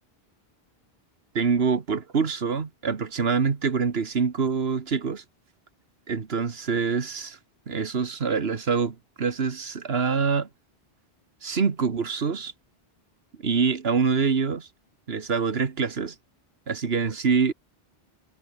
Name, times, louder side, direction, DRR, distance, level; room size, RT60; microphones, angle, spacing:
voice 1, 1.4-5.2 6.1-7.4 7.7-10.5 11.4-12.5 13.4-14.7 15.1-16.2 16.7-17.5, right 5 dB, 75° right, 1.8 m, -25 dB
omnidirectional pair, 1.0 m